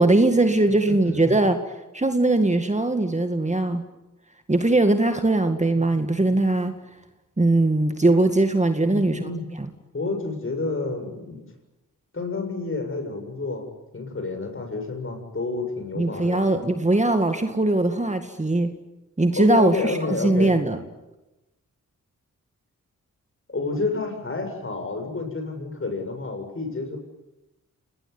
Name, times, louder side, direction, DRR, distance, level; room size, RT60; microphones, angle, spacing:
voice 1, 0.0-1.6 1.9-3.9 4.5-6.7 7.4-9.3 9.6-9.7 16.0-18.7 19.2-20.8, right 2 dB, 20° right, 7 dB, 2.0 m, -20 dB
voice 2, 0.9-1.3 8.8-9.4 9.9-11.4 12.1-16.5 19.3-20.6 23.5-27.0, left 3 dB, 40° left, 5 dB, 7.3 m, -29 dB
28.0 x 19.5 x 9.7 m, 1.0 s
cardioid pair, 70°, 33 cm